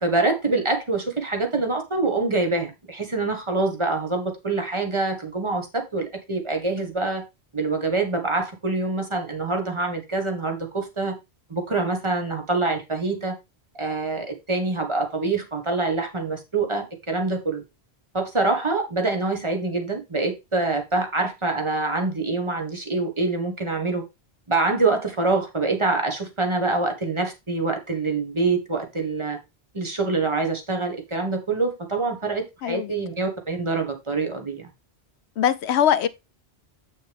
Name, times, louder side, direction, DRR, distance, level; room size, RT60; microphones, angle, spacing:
voice 1, 0.0-7.2 7.5-11.2 11.5-13.3 13.7-17.6 18.1-24.0 24.5-29.4 29.7-34.7, right 3 dB, 25° right, 1.6 m, -25 dB
voice 2, 32.6-33.0 35.4-36.1, left 9 dB, 80° left, 0.9 m, -21 dB
7.9 x 6.4 x 3.5 m
omnidirectional pair, 1.1 m